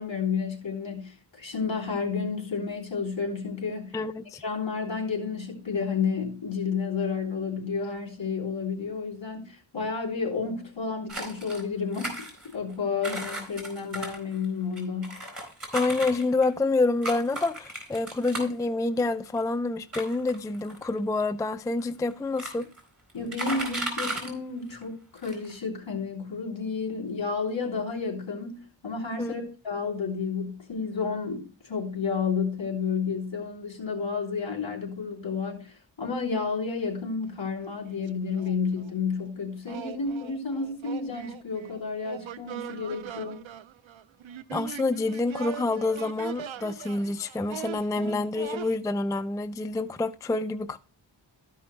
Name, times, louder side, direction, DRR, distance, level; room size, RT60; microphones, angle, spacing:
voice 1, 0.0-4.0 4.4-15.2 23.1-43.5 47.9-48.2, left 5 dB, 70° left, 3.2 m, -31 dB
voice 2, 3.9-4.4 15.7-22.7 29.2-29.3 44.5-50.8, left 3 dB, 10° left, 0.3 m, -27 dB
sound 1, 11.1-11.6 11.9-12.7 13.0-16.5 17.0-18.6 19.3-19.4 19.9-21.0 21.8-21.9 22.1-22.8 23.1-24.3 24.8-24.9 25.2-25.5, right 1 dB, 30° right, 4.1 m, -35 dB
sound 2, 37.3-37.4 37.7-39.0 39.7-48.8, right 9 dB, 85° right, 0.6 m, -41 dB
13.0 x 5.5 x 3.1 m
wide cardioid pair, 70°, 46 cm